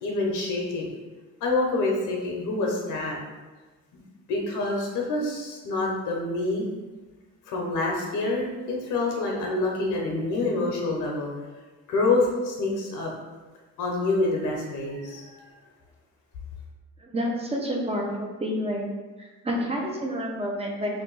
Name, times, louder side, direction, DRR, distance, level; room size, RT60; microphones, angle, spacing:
voice 1, 0.0-0.9 1.4-3.2 3.9-4.0 4.3-6.7 7.5-11.3 11.9-13.1 13.8-15.2, left 2 dB, 90° left, -1 dB, 0.7 m, -27 dB
voice 2, 17.0-18.9 19.2-21.0, equal, 20° right, 0 dB, 0.6 m, -29 dB
2.6 x 2.5 x 3.8 m, 1.3 s
cardioid pair, 90°, 30 cm